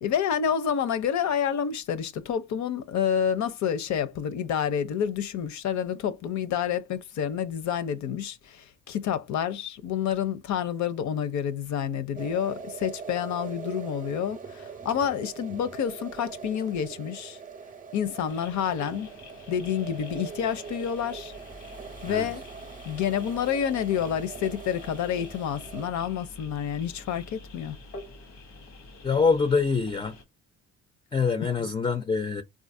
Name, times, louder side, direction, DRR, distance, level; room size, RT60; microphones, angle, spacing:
voice 1, 0.0-17.4 17.9-19.1 19.5-21.3 22.0-22.4 22.8-27.7 31.4-31.7, left 8 dB, 70° left, 0.6 m, -29 dB
sound 1, 12.2-25.9, right 6 dB, 25° right, 0.6 m, -42 dB
sound 2, 18.3-30.2, left 2 dB, 90° left, 1.1 m, -47 dB
voice 2, 29.0-30.1 31.1-32.4, left 5 dB, 15° left, 0.4 m, -25 dB
3.8 x 2.5 x 2.5 m
cardioid pair, 90°, 30 cm